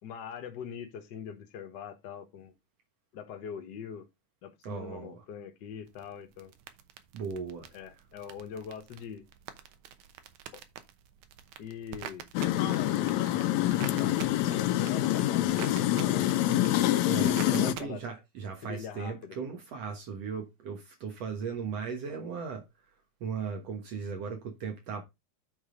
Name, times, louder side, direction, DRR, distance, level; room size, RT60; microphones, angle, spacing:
voice 1, 0.0-2.5 3.1-4.1 4.4-6.5 7.7-9.2 10.5-10.6 11.6-12.3 12.6-13.2 14.0-14.1 14.6-16.3 17.5-18.0 18.6-19.4, left 7 dB, 50° left, 1.4 m, -42 dB
voice 2, 4.6-5.2 7.1-7.7 17.1-22.6 23.2-25.0, right 6 dB, 65° right, 2.3 m, -37 dB
sound 1, 5.9-17.8, right 10 dB, 90° right, 2.3 m, -47 dB
sound 2, 12.3-17.7, left 13 dB, 80° left, 1.9 m, -26 dB
8.7 x 4.0 x 5.0 m
omnidirectional pair, 3.4 m